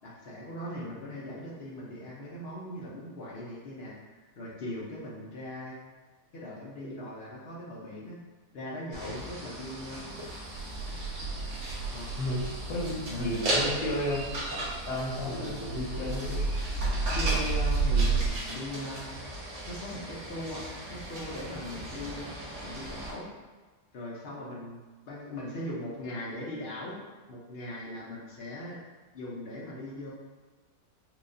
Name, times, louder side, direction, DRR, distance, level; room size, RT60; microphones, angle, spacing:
voice 1, 0.0-5.8 6.3-8.2 8.5-10.0 11.9-12.2 13.1-13.3 15.3-15.6 17.1-19.1 19.6-20.6 20.9-22.3 22.6-23.3 23.9-24.8 25.1-27.0 27.3-28.8 29.1-30.1, left 1 dB, 55° left, -4 dB, 0.7 m, -39 dB
sound 1, 8.9-23.1, right 1 dB, 55° right, 1.1 m, -37 dB
sound 2, 10.5-18.3, right 4 dB, 85° right, 1.2 m, -32 dB
voice 2, 12.2-14.2 14.9-16.4, left 1 dB, 75° left, -6 dB, 1.4 m, -32 dB
4.5 x 2.3 x 2.6 m, 1.3 s
omnidirectional pair, 1.7 m